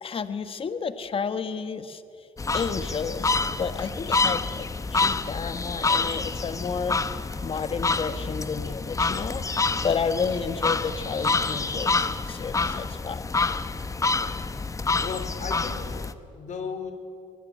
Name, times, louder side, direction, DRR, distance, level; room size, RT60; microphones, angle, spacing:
voice 1, 0.0-2.3 2.5-7.0 7.4-9.4 9.8-13.3, left 5 dB, 40° left, 11 dB, 1.5 m, -31 dB
sound 1, 2.4-16.1, left 4 dB, 20° left, 1.0 m, -27 dB
voice 2, 15.0-16.9, left 6 dB, 55° left, 7 dB, 3.2 m, -36 dB
23.0 x 21.5 x 9.8 m, 2.6 s
cardioid pair, 110°, 15 cm